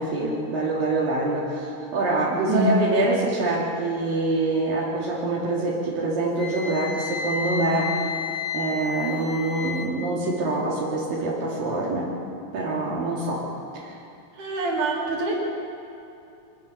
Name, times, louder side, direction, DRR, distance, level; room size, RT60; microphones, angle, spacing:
voice 1, 0.0-8.0 8.5-12.1 12.5-13.5 13.7-14.0, right 2 dB, 80° right, -5 dB, 4.4 m, -25 dB
Wind instrument woodwind instrument, 6.4-9.9, left 5 dB, 55° left, 3.7 m, -31 dB
voice 2, 14.4-15.5, right 1 dB, 60° right, -3 dB, 5.0 m, -25 dB
24.0 x 19.0 x 6.9 m, 2.7 s
omnidirectional pair, 4.0 m